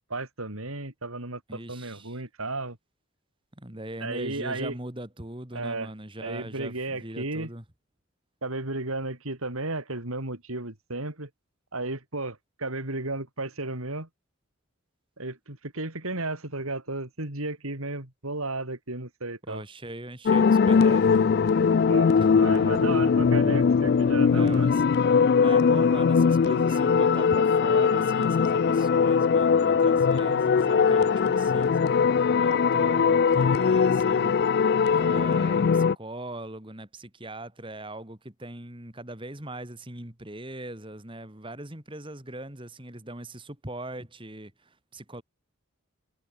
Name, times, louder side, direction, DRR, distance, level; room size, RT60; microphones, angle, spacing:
voice 1, 0.0-2.8 4.0-4.8 5.5-5.9 6.2-7.5 8.4-11.3 11.7-14.1 15.2-19.6 21.7-22.1 22.4-24.7, right 2 dB, 75° right, 4.0 m, -33 dB
voice 2, 1.5-2.2 3.6-7.6 19.5-21.3 22.1-22.9 24.3-24.8 25.4-34.3 34.9-45.2, right 1 dB, 25° right, 2.4 m, -40 dB
sound 1, 20.3-36.0, left 6 dB, 45° left, 0.3 m, -21 dB
head